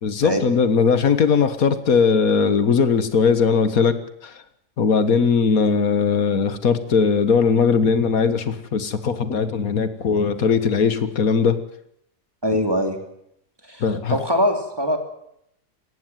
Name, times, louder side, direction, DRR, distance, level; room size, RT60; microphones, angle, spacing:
voice 1, 0.0-3.9 4.2-4.4 4.8-11.6 13.8-14.2, left 5 dB, 85° left, 12 dB, 1.9 m, -19 dB
voice 2, 12.4-13.0 13.7-13.8 14.1-15.0, equal, 15° right, 5 dB, 2.9 m, -22 dB
18.0 x 15.5 x 9.2 m, 0.74 s
omnidirectional pair, 1.5 m